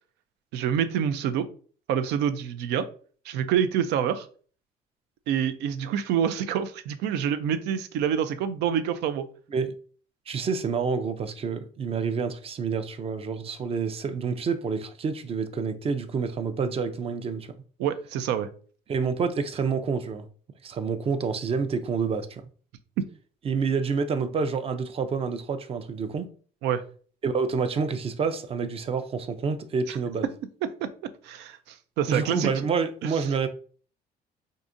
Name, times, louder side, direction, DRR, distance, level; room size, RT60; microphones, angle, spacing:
voice 1, 0.5-1.5 1.9-2.9 3.3-4.3 5.3-9.3 17.8-18.5 26.6-26.8 29.9-30.0 30.8-30.9 31.2-32.5, right 8 dB, 90° right, 0.5 m, -26 dB
voice 2, 10.3-17.6 18.9-20.3 20.6-22.4 23.4-26.3 27.2-30.3 32.1-33.5, right 5 dB, 35° right, 0.5 m, -28 dB
4.7 x 2.7 x 2.5 m
cardioid pair, 110°, 17 cm